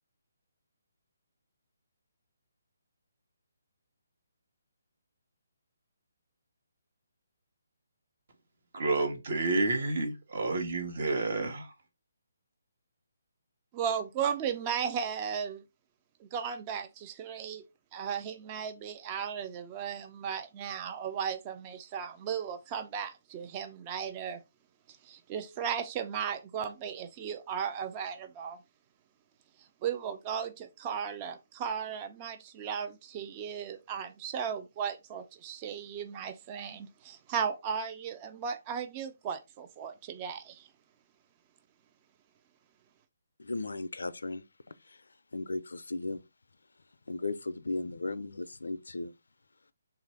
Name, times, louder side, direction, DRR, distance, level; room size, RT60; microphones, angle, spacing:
voice 1, 8.7-11.6, right 3 dB, 55° right, 1.1 m, -29 dB
voice 2, 13.7-15.6 16.2-17.6 17.9-24.4 25.0-28.6 29.8-40.7, right 7 dB, 25° right, 0.4 m, -36 dB
voice 3, 43.4-46.2 47.1-49.2, left 2 dB, 85° left, 0.4 m, -36 dB
3.3 x 2.5 x 4.4 m
hypercardioid pair, 155°, 0 cm